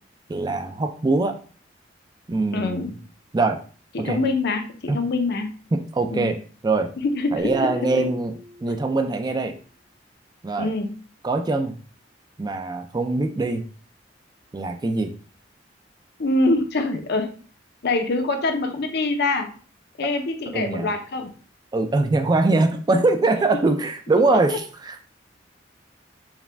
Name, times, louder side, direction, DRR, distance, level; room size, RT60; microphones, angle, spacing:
voice 1, 0.3-1.4 2.3-2.9 3.3-3.6 4.0-4.2 4.9-5.0 5.7-6.4 6.6-6.9 7.3-8.3 8.6-9.6 10.4-10.7 11.2-11.7 12.4-13.6 14.5-15.1 20.5-20.9 21.7-24.6 24.9-25.0, right 3 dB, 20° right, 6 dB, 0.3 m, -22 dB
voice 2, 2.5-2.9 3.9-5.5 6.1-6.3 7.0-8.1 10.6-10.9 16.2-17.3 17.8-19.5 20.0-21.3 24.3-24.6, left 2 dB, 60° left, 6 dB, 0.6 m, -24 dB
sound 1, 7.4-9.1, left 2 dB, 70° right, 1.2 m, -37 dB
4.7 x 2.2 x 3.3 m, 0.39 s
head